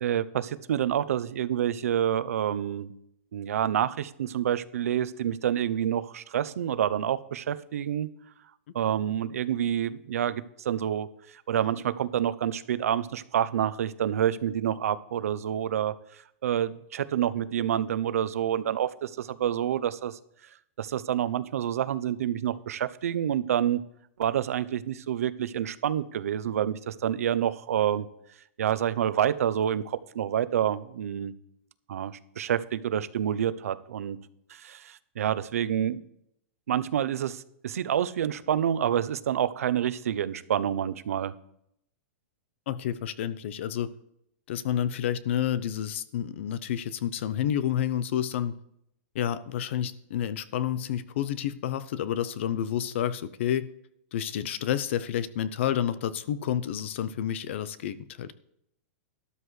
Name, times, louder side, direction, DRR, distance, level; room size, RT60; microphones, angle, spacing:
voice 1, 0.0-2.9 3.3-8.1 8.7-11.1 11.3-20.2 20.8-23.8 24.2-28.1 28.6-31.3 31.9-34.2 34.5-36.0 36.7-41.3, right 10 dB, 85° right, 15 dB, 0.7 m, -28 dB
voice 2, 42.7-43.9 44.5-48.5 49.1-53.7 54.1-58.3, left 10 dB, 55° left, 16 dB, 0.7 m, -29 dB
12.5 x 12.5 x 3.3 m, 0.78 s
supercardioid pair, 165°, 8 cm